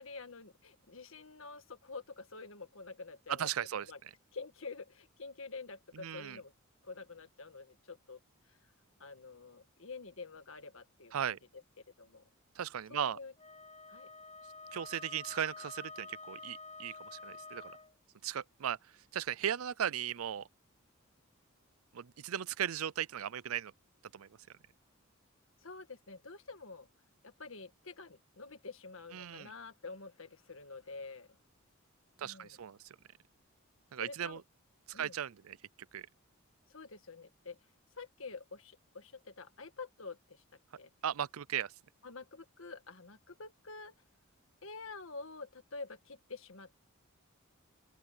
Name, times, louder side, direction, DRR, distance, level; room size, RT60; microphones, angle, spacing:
voice 1, 0.0-4.0 4.3-6.5 6.8-8.2 8.5-8.6 9.0-11.3 12.0-12.2 12.9-13.3 13.9-14.1 25.6-26.9 27.2-31.4 32.2-32.6 34.0-34.4 34.9-35.1 36.7-37.6 38.0-40.4 40.8-40.9 42.0-43.9 44.6-46.8, left 4 dB, 70° left, 1.7 m, -48 dB
voice 2, 3.3-3.9 5.9-6.4 11.1-11.4 12.6-13.2 14.7-17.7 18.2-20.5 21.9-23.7 24.1-24.3 29.1-29.5 32.2-33.0 33.9-34.4 34.9-35.6 35.9-36.1 41.0-41.7, right 9 dB, 90° right, 0.5 m, -37 dB
Wind instrument woodwind instrument, 13.4-17.9, left 3 dB, 35° left, 1.1 m, -49 dB
open air
head